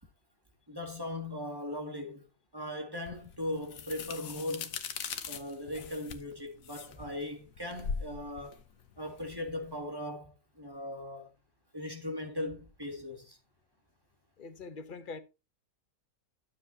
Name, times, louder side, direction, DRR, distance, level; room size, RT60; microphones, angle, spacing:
voice 1, 0.7-2.2 2.5-4.8 5.3-8.6 9.0-11.3 11.7-13.4, left 1 dB, 15° right, 2.1 m, -39 dB
sound 1, 3.1-9.8, left 6 dB, 80° left, 1.4 m, -41 dB
voice 2, 14.4-15.2, left 4 dB, 40° left, 0.9 m, -43 dB
12.5 x 7.1 x 2.8 m
omnidirectional pair, 1.4 m